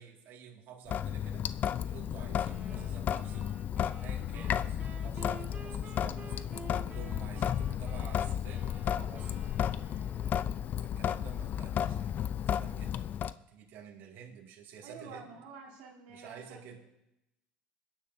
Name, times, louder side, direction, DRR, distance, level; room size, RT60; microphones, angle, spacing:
voice 1, 0.0-3.5 4.0-9.4 10.8-13.1 13.5-15.3 16.1-16.8, right 7 dB, 60° right, 0 dB, 2.2 m, -50 dB
Sink (filling or washing) / Drip, 0.9-13.3, left 9 dB, 45° left, 0.5 m, -33 dB
sound 1, 2.3-10.7, right 4 dB, 35° right, 2.0 m, -52 dB
voice 2, 14.8-16.8, right 4 dB, 85° right, -1 dB, 2.2 m, -49 dB
23.0 x 10.0 x 2.7 m, 0.87 s
supercardioid pair, 85°, 4 cm